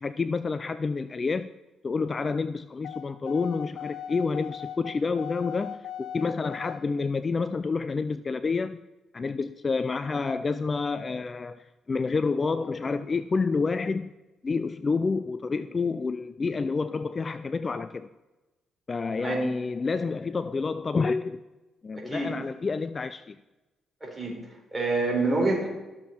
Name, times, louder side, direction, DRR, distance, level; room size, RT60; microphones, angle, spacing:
voice 1, 0.0-1.5 1.8-8.8 9.1-14.1 14.4-18.1 18.9-21.4 21.8-23.4, left 4 dB, 35° left, 0.4 m, -29 dB
sound 1, 2.8-6.8, left 10 dB, 85° left, 1.8 m, -39 dB
voice 2, 22.0-22.3 24.0-25.7, right 2 dB, 15° right, 4.0 m, -27 dB
13.5 x 7.2 x 4.4 m
cardioid pair, 90°, 0 cm